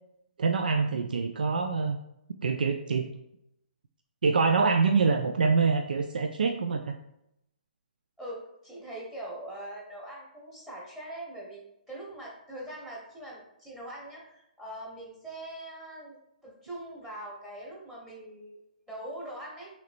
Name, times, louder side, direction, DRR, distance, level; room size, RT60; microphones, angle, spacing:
voice 1, 0.4-2.0 2.4-3.1 4.2-6.9, right 4 dB, 75° right, 5 dB, 0.4 m, -25 dB
voice 2, 8.2-16.2 16.4-19.7, right 1 dB, 10° right, -4 dB, 1.2 m, -42 dB
5.8 x 3.1 x 2.5 m, 0.81 s
hypercardioid pair, 135°, 5 cm